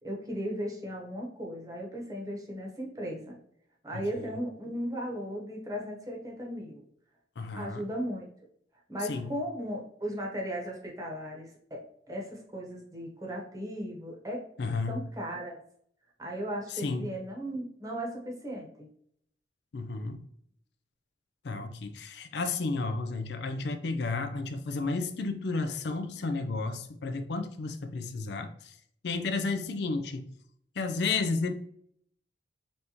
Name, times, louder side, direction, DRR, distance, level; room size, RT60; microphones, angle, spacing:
voice 1, 0.0-3.4 3.8-6.8 7.5-8.3 8.9-14.4 14.9-15.6 16.2-18.9, equal, 20° right, -2 dB, 1.0 m, -36 dB
voice 2, 3.9-4.3 7.4-7.8 9.1-9.3 14.6-15.0 16.7-17.1 19.7-20.2 21.4-28.8 29.0-30.3 30.8-31.5, left 3 dB, 60° left, 8 dB, 0.4 m, -32 dB
4.0 x 3.4 x 2.9 m, 0.68 s
head